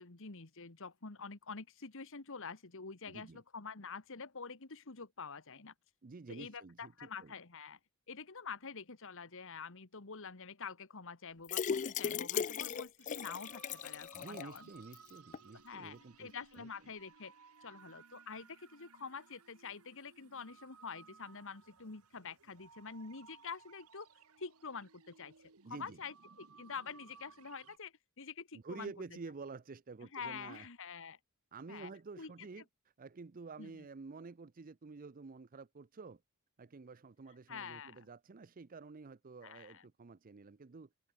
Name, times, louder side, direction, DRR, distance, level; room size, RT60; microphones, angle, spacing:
voice 1, 0.0-5.7 6.3-7.8 8.1-14.7 15.6-17.3 17.6-24.1 24.4-25.3 25.6-28.9 30.1-31.2 31.7-31.9 32.2-32.3 33.6-33.8 37.5-38.0 39.4-39.8, left 5 dB, 65° left, 1.7 m, -47 dB
voice 2, 3.1-3.4 6.0-7.3 14.1-16.7 25.6-26.0 28.5-30.7 31.5-32.6 33.0-36.2 36.6-40.9, right 4 dB, 40° right, 0.6 m, -50 dB
sound 1, 11.4-14.6 14.9-15.0 15.3-15.4, left 7 dB, 35° left, 0.4 m, -37 dB
sound 2, 13.0-27.8, right 5 dB, 80° right, 1.6 m, -61 dB
open air
head